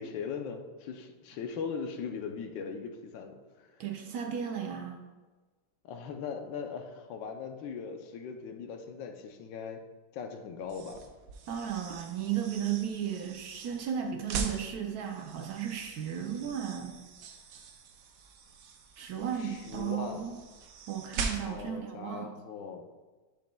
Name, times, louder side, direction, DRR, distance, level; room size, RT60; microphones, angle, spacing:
voice 1, 0.0-3.8 5.8-9.8 10.1-11.0 19.4-20.2 21.4-22.8, left 6 dB, 80° left, 5 dB, 1.4 m, -39 dB
voice 2, 3.8-5.0 11.5-17.0 19.0-20.4 20.9-22.3, right 9 dB, 70° right, 3 dB, 0.9 m, -35 dB
sound 1, 10.6-21.8, right 5 dB, 85° right, 1.4 m, -42 dB
10.5 x 5.1 x 2.2 m, 1.3 s
omnidirectional pair, 2.0 m